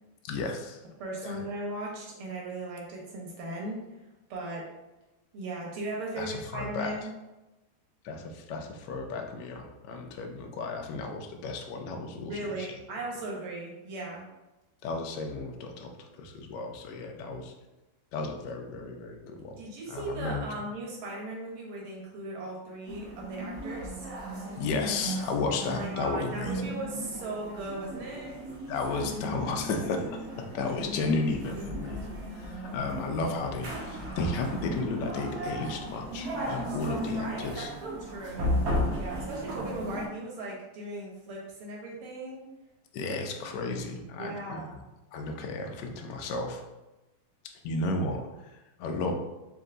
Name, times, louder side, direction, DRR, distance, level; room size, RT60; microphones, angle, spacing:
voice 1, 0.2-0.8 1.2-1.4 6.2-6.9 8.0-12.3 12.6-12.7 14.8-17.5 18.1-19.6 19.9-20.5 24.6-26.6 28.7-37.7 39.2-39.3 42.9-44.8 45.1-46.6 47.6-49.1, left 3 dB, 70° left, 2 dB, 1.1 m, -33 dB
voice 2, 1.0-3.8 4.3-4.6 5.3-7.1 12.2-14.2 19.6-24.1 25.6-28.4 37.1-38.6 38.9-42.4 44.2-44.8, right 2 dB, 75° right, -2 dB, 2.0 m, -37 dB
sound 1, 22.9-40.1, equal, 60° right, 1.2 m, -35 dB
4.4 x 2.7 x 3.8 m, 1.0 s
omnidirectional pair, 2.3 m